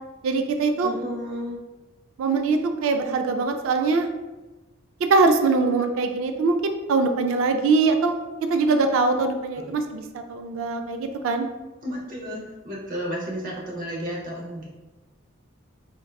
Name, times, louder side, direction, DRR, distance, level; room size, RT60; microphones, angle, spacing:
voice 1, 0.2-0.9 2.2-4.1 5.1-8.2 8.5-11.5, right 3 dB, 75° right, 6 dB, 0.3 m, -22 dB
voice 2, 0.8-1.6 9.5-9.7 11.8-14.7, equal, 40° right, -3 dB, 0.7 m, -32 dB
3.6 x 2.3 x 2.3 m, 1.2 s
head